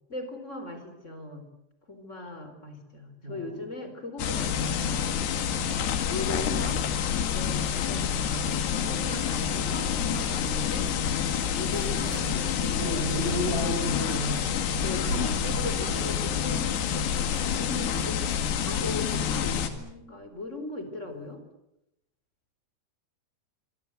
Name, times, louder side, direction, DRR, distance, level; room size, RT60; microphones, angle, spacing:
voice 1, 0.1-1.4 1.9-5.3 6.1-6.8 7.3-10.9 11.3-13.1 14.8-21.4, left 2 dB, 20° left, 7 dB, 4.1 m, -38 dB
voice 2, 3.2-3.7 10.1-10.4 12.6-14.5, equal, 15° right, 1 dB, 4.3 m, -32 dB
sound 1, 4.2-19.7, left 8 dB, 90° left, 4.1 m, -28 dB
sound 2, 8.1-10.8 11.1-12.3 12.8-16.5 17.0-19.1 20.2-20.4 20.9-21.0 21.2-21.3, right 2 dB, 45° right, 5.3 m, -41 dB
25.0 x 25.0 x 8.1 m, 0.86 s
omnidirectional pair, 4.7 m